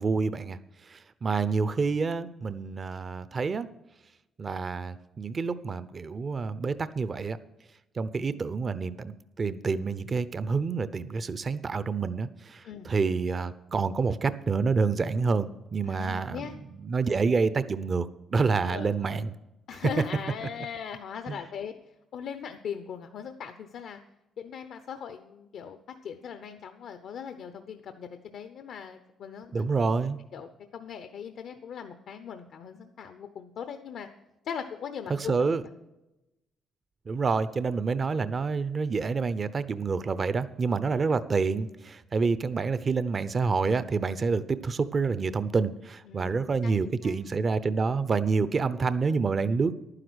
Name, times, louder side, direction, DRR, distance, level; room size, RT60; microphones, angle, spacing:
voice 1, 0.0-3.7 4.4-7.4 7.9-16.5 16.7-19.3 21.3-21.4 29.5-30.2 35.1-35.6 37.1-49.7, right 4 dB, 40° right, 14 dB, 0.6 m, -28 dB
voice 2, 15.8-16.6 18.7-18.9 19.7-21.7 22.1-24.0 24.4-29.7 30.3-34.1 34.4-35.3 46.1-46.7 47.0-47.2, left 7 dB, 70° left, 8 dB, 0.8 m, -39 dB
11.5 x 9.9 x 6.3 m, 0.95 s
cardioid pair, 90°, 0 cm